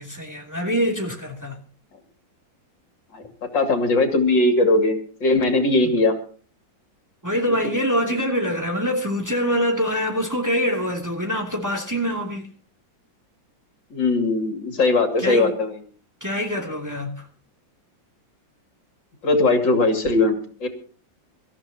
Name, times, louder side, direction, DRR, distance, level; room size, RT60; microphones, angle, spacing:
voice 1, 0.0-1.6 5.8-5.9 7.2-12.5 15.2-15.5 16.2-17.3, equal, 10° right, 2.8 m, -25 dB
voice 2, 3.5-6.2 13.9-15.7 19.2-20.3 20.6-20.7, left 2 dB, 70° left, 3.3 m, -19 dB
25.5 x 14.0 x 2.9 m
omnidirectional pair, 2.0 m